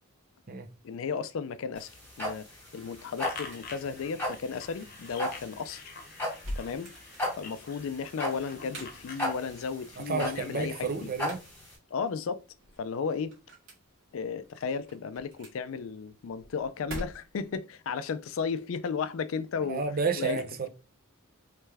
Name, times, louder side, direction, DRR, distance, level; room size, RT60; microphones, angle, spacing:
voice 1, 0.8-1.9 2.2-2.5 2.7-5.9 6.6-6.9 7.3-11.1 11.9-12.4 12.8-13.4 14.1-19.8 20.2-20.4, left 5 dB, 65° left, 0.4 m, -34 dB
sound 1, 1.8-11.7, left 1 dB, 10° left, 1.8 m, -36 dB
sound 2, 2.6-17.6, equal, 65° right, 1.9 m, -47 dB
sound 3, 3.2-9.5, left 4 dB, 45° left, 0.9 m, -47 dB
voice 2, 10.0-11.4 19.7-20.7, right 4 dB, 45° right, 0.6 m, -31 dB
3.3 x 3.2 x 3.3 m
head